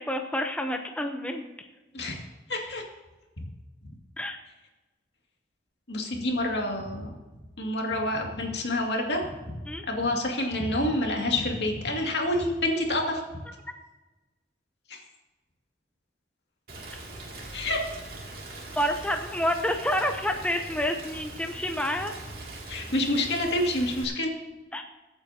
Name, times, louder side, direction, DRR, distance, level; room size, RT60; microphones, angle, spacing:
voice 1, 0.0-1.4 4.2-4.4 9.7-9.8 18.8-22.1 24.7-24.8, equal, 5° left, 4 dB, 0.7 m, -28 dB
voice 2, 2.5-2.8 5.9-7.1 7.6-9.6 9.9-13.2 14.9-15.0 17.5-17.8 22.7-24.3, left 1 dB, 75° left, 0 dB, 2.3 m, -28 dB
Rain, 16.7-24.0, right 2 dB, 55° right, 2.6 m, -42 dB
23.0 x 8.7 x 2.8 m, 1.2 s
head